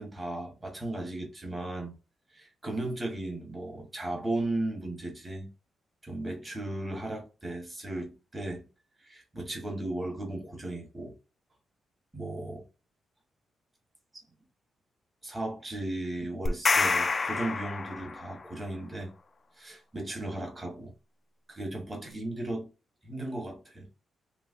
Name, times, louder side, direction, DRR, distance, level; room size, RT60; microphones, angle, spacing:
voice 1, 0.0-1.9 2.3-5.5 6.0-8.7 9.0-11.1 12.1-12.6 14.1-14.2 15.2-19.1 19.5-20.9 21.5-22.7 23.0-23.9, right 1 dB, 20° right, 1.1 m, -36 dB
sound 1, 16.5-18.4, left 4 dB, 25° left, 0.3 m, -27 dB
3.2 x 3.1 x 2.4 m
wide cardioid pair, 170°, 0 cm